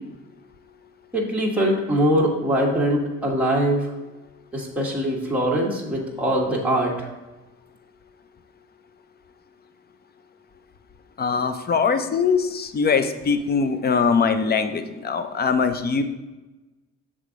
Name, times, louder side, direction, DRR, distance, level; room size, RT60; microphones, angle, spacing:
voice 1, 1.1-3.8 4.5-6.9, equal, 5° right, -3 dB, 1.5 m, -22 dB
voice 2, 11.2-16.0, left 5 dB, 30° left, 9 dB, 0.6 m, -22 dB
6.5 x 3.7 x 5.0 m, 1.1 s
cardioid pair, 90°, 30 cm